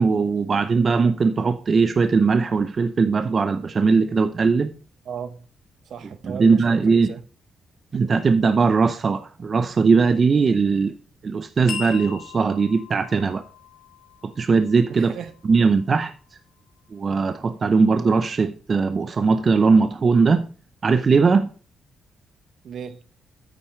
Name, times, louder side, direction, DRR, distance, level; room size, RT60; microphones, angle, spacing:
voice 1, 0.0-4.7 6.2-7.1 7.9-10.9 11.2-13.4 14.4-15.1 15.4-16.1 16.9-20.5 20.8-21.5, right 4 dB, 40° right, 0.6 m, -19 dB
voice 2, 5.0-5.5 5.9-7.2 14.9-15.3 22.6-23.0, right 7 dB, 70° right, 1.1 m, -36 dB
sound 1, 11.7-16.3, left 9 dB, 75° left, 2.4 m, -40 dB
9.4 x 8.7 x 3.1 m
cardioid pair, 100°, 0 cm